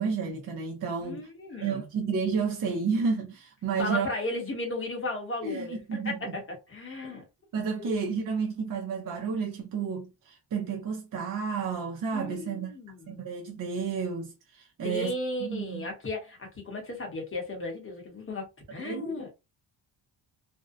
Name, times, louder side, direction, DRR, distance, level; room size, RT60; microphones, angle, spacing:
voice 1, 0.0-1.3 1.6-4.1 5.4-6.4 7.0-7.1 7.5-12.7 13.1-15.1 15.4-15.9 18.8-19.3, right 5 dB, 45° right, 0.6 m, -31 dB
voice 2, 1.0-1.8 3.8-7.2 7.8-8.0 12.1-13.2 14.8-19.3, left 2 dB, 25° left, 0.8 m, -35 dB
2.5 x 2.1 x 2.5 m
wide cardioid pair, 170°, 47 cm